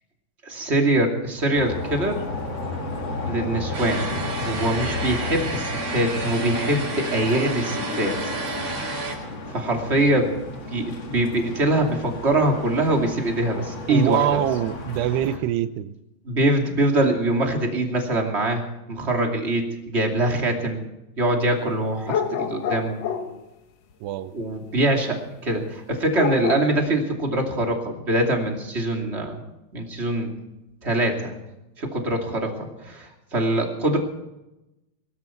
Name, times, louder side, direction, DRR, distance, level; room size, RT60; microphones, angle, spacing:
voice 1, 0.4-2.2 3.2-4.0 4.4-8.7 9.5-10.3 10.7-14.4 16.2-18.6 18.9-20.8 21.2-23.0 24.3-29.4 29.7-30.3 30.8-31.3 31.8-34.0, right 1 dB, 20° right, 2 dB, 1.8 m, -23 dB
sound 1, 1.5-15.4, left 3 dB, 35° left, 2.1 m, -33 dB
sound 2, 3.7-9.2, right 3 dB, 45° right, 5.0 m, -31 dB
voice 2, 13.9-15.9 24.0-24.3, right 11 dB, 80° right, 12 dB, 2.7 m, -24 dB
sound 3, 22.0-23.4 26.1-26.7, left 6 dB, 85° left, 1.4 m, -27 dB
23.0 x 13.5 x 4.5 m, 0.93 s
omnidirectional pair, 5.2 m